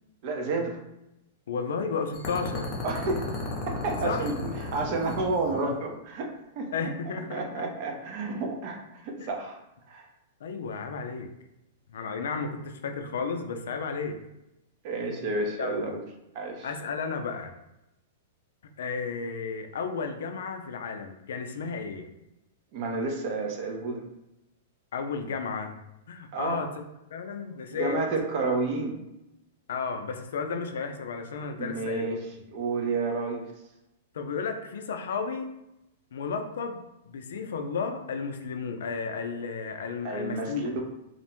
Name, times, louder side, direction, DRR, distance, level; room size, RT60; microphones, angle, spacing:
voice 1, 0.2-0.8 2.8-3.3 3.7-6.3 6.6-6.9 7.3-9.6 9.9-10.1 14.8-16.0 16.3-16.7 22.7-24.0 26.3-26.6 27.7-28.9 31.5-32.3 32.5-33.4 40.0-40.8, right 3 dB, 45° right, 2 dB, 0.6 m, -30 dB
voice 2, 1.5-2.7 4.0-4.3 6.7-7.6 9.2-9.3 10.4-11.3 11.9-14.2 15.6-15.9 16.6-17.5 18.8-22.1 24.9-25.8 26.1-26.7 27.1-28.0 29.7-32.2 34.1-35.5 36.1-36.8 37.1-40.7, left 5 dB, 80° left, 5 dB, 0.3 m, -33 dB
sound 1, 2.1-6.0, left 2 dB, 30° left, 0.6 m, -35 dB
2.4 x 2.1 x 2.9 m, 0.89 s
hypercardioid pair, 140°, 0 cm